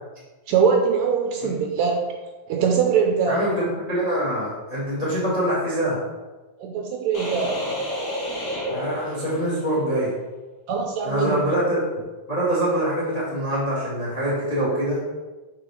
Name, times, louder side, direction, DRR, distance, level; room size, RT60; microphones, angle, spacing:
voice 1, 0.5-2.1 2.5-3.4 6.6-7.6 10.7-11.4, right 6 dB, 75° right, 2 dB, 1.8 m, -22 dB
voice 2, 3.3-6.0 8.7-10.1 11.0-11.8 12.3-15.0, right 1 dB, 30° left, -6 dB, 0.8 m, -24 dB
sound 1, 7.1-9.8, equal, 45° left, 1.2 m, -30 dB
5.8 x 3.8 x 4.6 m, 1.2 s
omnidirectional pair, 3.6 m